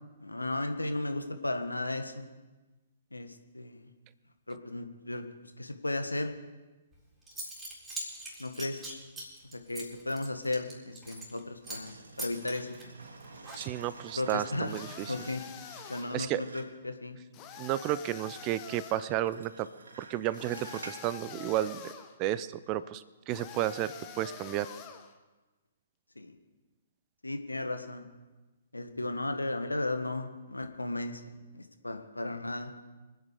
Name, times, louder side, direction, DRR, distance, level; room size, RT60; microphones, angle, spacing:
voice 1, 0.2-2.2 3.1-3.9 4.5-5.2 5.6-6.3 8.4-8.8 9.5-12.8 14.1-14.7 15.1-15.4 15.9-17.2 26.1-26.4 27.2-28.1 28.7-32.7, left 2 dB, 85° left, 7 dB, 1.5 m, -35 dB
Zipper (clothing) / Coin (dropping), 6.9-7.0 7.3-11.4 11.7-11.9 12.2-14.0, right 1 dB, 10° right, 4.0 m, -42 dB
sound 1, 11.6-16.9 19.1-21.1 21.5-21.6, right 3 dB, 70° right, 2.2 m, -49 dB
voice 2, 13.6-15.1 16.1-16.4 17.6-19.7 20.0-21.9 22.2-24.7, right 13 dB, 30° right, 16 dB, 0.6 m, -32 dB
sound 2, 14.7-16.3 17.3-19.1 20.3-22.2 23.3-25.1, left 7 dB, 25° left, 1.4 m, -46 dB
24.5 x 9.1 x 5.1 m, 1.2 s
figure-of-eight pair, 120°, 0 cm